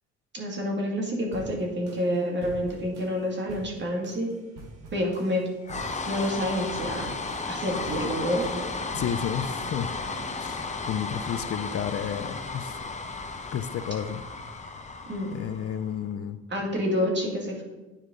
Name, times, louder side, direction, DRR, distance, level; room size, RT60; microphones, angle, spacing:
voice 1, 0.3-4.3 4.9-5.5 6.0-7.1 7.5-8.6 15.1-15.3 16.5-17.6, equal, 35° right, 0 dB, 2.1 m, -28 dB
sound 1, 1.3-10.0, right 2 dB, 85° right, 1.7 m, -46 dB
sound 2, 5.6-15.9, left 3 dB, 25° left, 0.8 m, -34 dB
voice 2, 8.9-9.9 10.4-12.8 13.5-14.2 15.3-16.4, left 8 dB, 50° left, 11 dB, 0.5 m, -31 dB
10.0 x 4.6 x 3.8 m, 1.2 s
cardioid pair, 90°, 30 cm